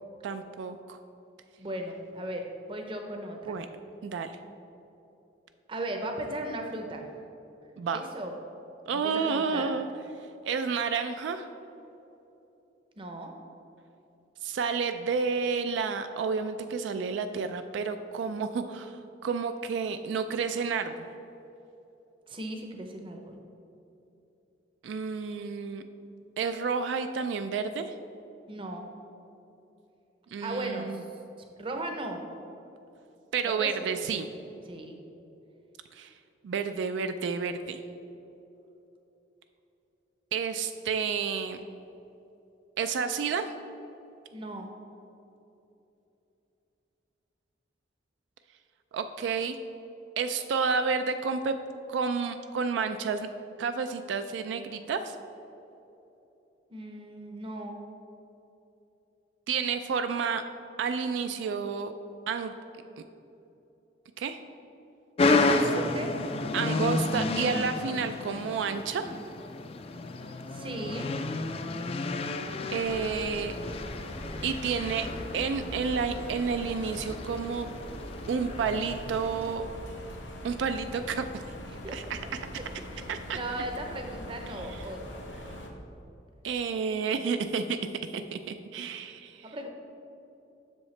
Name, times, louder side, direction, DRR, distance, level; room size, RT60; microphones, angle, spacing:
voice 1, 0.2-1.0 3.5-3.7 4.0-4.4 7.8-8.0 8.9-9.9 10.4-11.5 14.4-21.0 24.8-25.8 26.4-27.9 30.3-31.0 33.3-34.3 35.9-36.1 36.4-37.8 40.3-41.6 42.8-43.5 48.9-49.6 50.2-51.6 51.9-53.3 53.6-55.2 59.5-60.4 60.8-61.9 62.3-62.5 64.2-64.4 65.3-65.7 66.5-69.1 72.7-73.5 74.4-75.1 75.3-77.7 78.3-79.7 80.4-81.4 81.9-82.2 83.1-83.4 84.7-84.8 86.4-87.8 88.1-89.5, right 5 dB, 80° right, 9 dB, 0.3 m, -30 dB
voice 2, 1.6-3.6 5.7-7.0 7.9-8.4 8.9-9.7 13.0-13.3 22.3-23.4 28.5-28.9 30.4-31.1 31.6-32.2 33.4-33.9 34.7-35.0 44.3-44.7 56.7-57.8 65.4-66.1 70.5-71.1 81.7-82.0 82.9-85.2 89.5-89.7, right 1 dB, 30° right, 3 dB, 0.6 m, -37 dB
sound 1, 65.2-79.5, left 3 dB, 30° left, 0.3 m, -31 dB
sound 2, 72.8-85.7, equal, 85° left, 0.9 m, -42 dB
7.5 x 6.4 x 3.2 m, 3.0 s
head